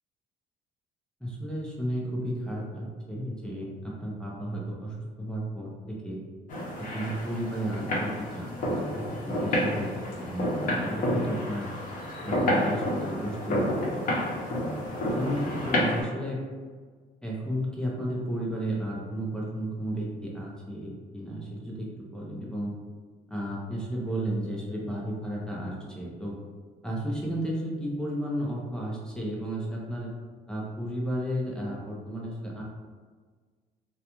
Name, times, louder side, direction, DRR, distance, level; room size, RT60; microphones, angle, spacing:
voice 1, 1.2-6.2 6.8-11.7 12.2-14.3 15.2-16.4 17.2-22.7 23.3-26.3 26.8-30.1 30.5-32.6, equal, 5° left, -5 dB, 0.5 m, -33 dB
sound 1, 6.5-16.0, left 1 dB, 55° left, 0.7 m, -29 dB
2.4 x 2.2 x 2.9 m, 1.5 s
cardioid pair, 110°, 17 cm